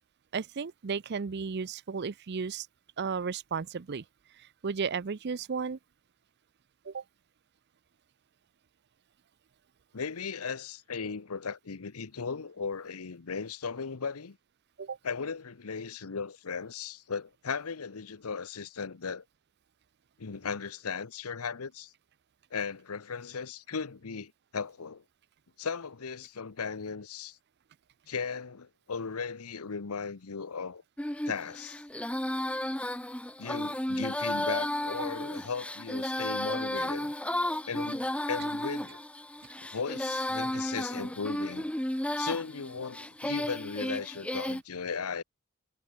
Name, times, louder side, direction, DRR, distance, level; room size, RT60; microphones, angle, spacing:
voice 1, 0.3-2.7 3.0-4.0 4.6-5.8 6.8-7.0 14.8-15.0, right 5 dB, 50° right, 0.5 m, -34 dB
voice 2, 9.9-14.4 15.0-19.2 20.2-21.9 22.5-25.0 25.6-27.4 28.1-30.8 31.3-31.8 33.4-37.1 37.7-39.0 39.6-41.7 42.2-45.2, left 5 dB, 85° left, 0.9 m, -37 dB
Female singing, 31.0-44.6, left 1 dB, 5° left, 1.1 m, -33 dB
head